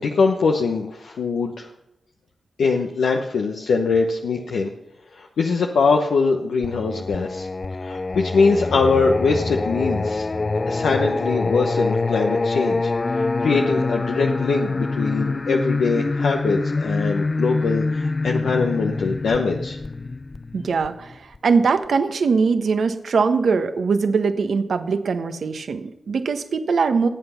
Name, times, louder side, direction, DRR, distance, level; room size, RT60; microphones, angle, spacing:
voice 1, 0.0-1.7 2.6-4.7 5.1-7.5 7.8-10.3 10.7-19.8, left 4 dB, 85° left, 2 dB, 1.1 m, -22 dB
Singing, 6.6-21.4, left 3 dB, 45° left, 0.4 m, -25 dB
voice 2, 20.5-21.1 21.4-27.1, right 5 dB, 75° right, 8 dB, 1.2 m, -21 dB
20.0 x 8.0 x 5.8 m, 0.89 s
cardioid pair, 45°, 0 cm